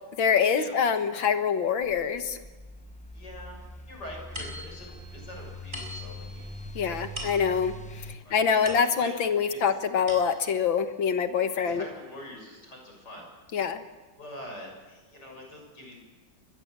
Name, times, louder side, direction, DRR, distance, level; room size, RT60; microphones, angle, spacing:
voice 1, 0.2-2.4 6.8-11.8 13.5-13.8, left 6 dB, 85° left, 8 dB, 2.2 m, -25 dB
sound 1, 1.8-8.2, equal, 5° left, 0.6 m, -43 dB
voice 2, 3.1-6.5 8.2-9.1 9.5-9.6 11.6-13.2 14.2-16.0, left 1 dB, 60° left, 1 dB, 7.3 m, -44 dB
sound 2, 4.3-9.3 9.8-10.7, equal, 25° right, 6.5 m, -43 dB
24.5 x 21.0 x 7.5 m, 1.2 s
omnidirectional pair, 2.0 m